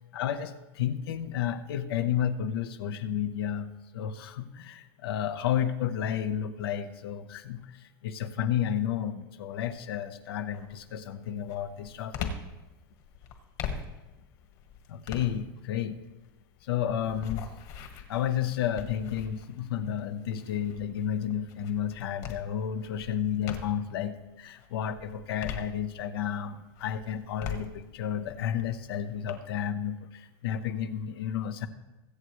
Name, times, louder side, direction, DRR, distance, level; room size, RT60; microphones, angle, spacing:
voice 1, 0.1-7.8 8.0-12.3 14.9-16.0 16.7-17.5 18.1-31.7, left 9 dB, 90° left, 10 dB, 0.9 m, -32 dB
sound 1, 9.6-10.0 10.5-24.0 24.5-26.3 26.7-29.3, left 7 dB, 50° left, 1.6 m, -42 dB
23.0 x 8.1 x 3.2 m, 1.1 s
supercardioid pair, 155°, 12 cm